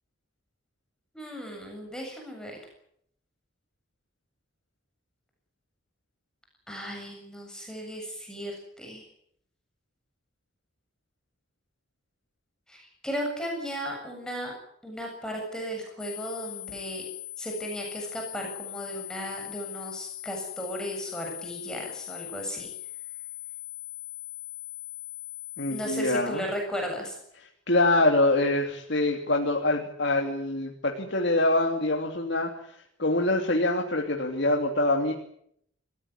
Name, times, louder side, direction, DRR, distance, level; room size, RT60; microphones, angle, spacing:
voice 1, 1.1-2.6 6.7-9.0 12.7-14.5 14.8-17.0 17.4-22.7 25.7-27.2, equal, 5° left, 1 dB, 7.5 m, -35 dB
sound 1, 16.0-26.0, left 15 dB, 20° left, 3.1 m, -40 dB
voice 2, 25.6-26.4 27.7-35.1, left 2 dB, 60° left, 1 dB, 3.1 m, -25 dB
28.5 x 16.5 x 9.7 m, 0.71 s
head